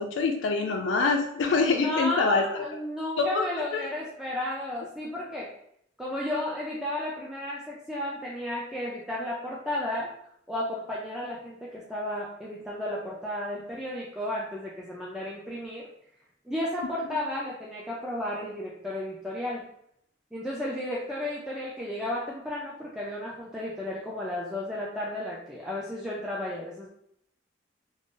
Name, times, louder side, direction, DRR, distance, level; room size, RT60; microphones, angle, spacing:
voice 1, 0.0-2.6 3.2-3.5 3.7-3.9, left 4 dB, 85° left, 3 dB, 0.3 m, -25 dB
voice 2, 1.6-5.5 6.0-10.1 10.5-15.9 16.5-19.6 20.3-26.9, left 1 dB, 5° right, -6 dB, 0.3 m, -33 dB
2.5 x 2.0 x 3.6 m, 0.72 s
head